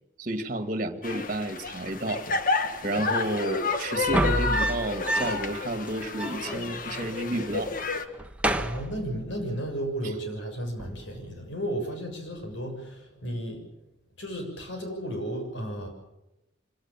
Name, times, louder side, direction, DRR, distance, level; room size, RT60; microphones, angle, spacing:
voice 1, 0.2-2.3 2.8-7.7, right 1 dB, 40° right, 8 dB, 1.9 m, -31 dB
sound 1, 1.0-8.1, left 3 dB, 45° left, 1.6 m, -30 dB
sound 2, 4.0-5.6 5.9-6.0 6.1-7.1 7.4-7.8 8.1-9.5 10.8-11.2, right 1 dB, 5° right, 1.1 m, -30 dB
voice 2, 8.5-13.6 14.2-15.9, right 1 dB, 70° left, 3 dB, 6.8 m, -33 dB
26.0 x 18.0 x 7.2 m, 0.92 s
head